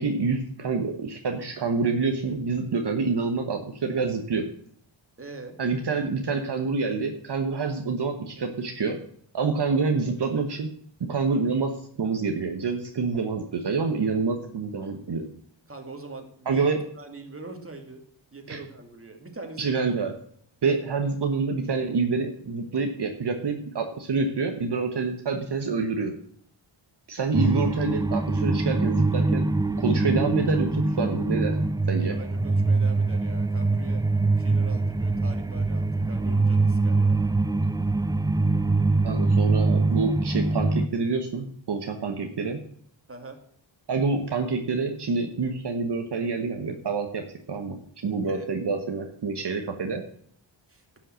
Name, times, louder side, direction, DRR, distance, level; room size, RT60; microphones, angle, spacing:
voice 1, 0.0-4.5 5.6-9.0 9.3-10.7 11.1-11.7 12.0-15.3 16.5-16.8 18.5-18.6 19.6-20.1 20.6-26.1 27.1-29.5 29.8-31.5 31.9-32.2 39.0-42.6 43.9-47.2 47.5-47.8 48.0-50.0, right 4 dB, 55° right, 4 dB, 1.3 m, -27 dB
voice 2, 5.2-5.6 15.7-16.7 17.0-18.0 18.3-19.8 32.1-34.0 34.3-37.2 43.1-43.4 48.2-48.5 50.7-50.8, right 3 dB, 25° right, 4 dB, 2.3 m, -42 dB
sound 1, 27.3-40.9, right 3 dB, 10° right, 0.4 m, -23 dB
11.5 x 5.7 x 7.5 m, 0.64 s
cardioid pair, 80°, 48 cm